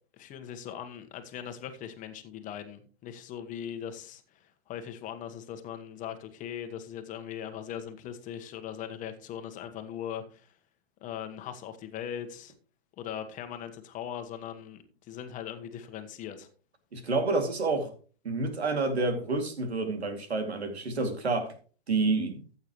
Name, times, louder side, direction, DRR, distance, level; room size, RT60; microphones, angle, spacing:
voice 1, 0.1-10.5 11.0-12.5 13.0-16.5, left 9 dB, 25° left, 1.4 m, -40 dB
voice 2, 16.9-17.9 18.2-21.5 21.9-22.4, right 3 dB, 80° right, 2.7 m, -29 dB
14.5 x 8.2 x 3.1 m
hypercardioid pair, 120°, 32 cm